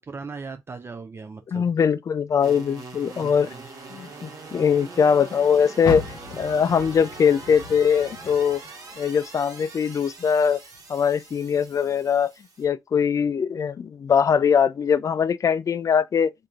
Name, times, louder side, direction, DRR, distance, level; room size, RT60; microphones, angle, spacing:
voice 1, 0.0-1.7 3.1-3.7, right 4 dB, 35° right, 0.4 m, -38 dB
voice 2, 1.5-3.5 3.9-6.0 6.4-8.6 9.0-10.6 10.9-12.3 12.6-16.3, left 7 dB, 50° left, 0.3 m, -21 dB
sound 1, 2.4-12.6, right 3 dB, 55° right, 1.1 m, -42 dB
Car, 5.8-9.1 9.5-10.9 11.3-11.4 12.0-12.1, left 5 dB, 75° left, 0.8 m, -36 dB
2.9 x 2.6 x 2.3 m
supercardioid pair, 50°, 7 cm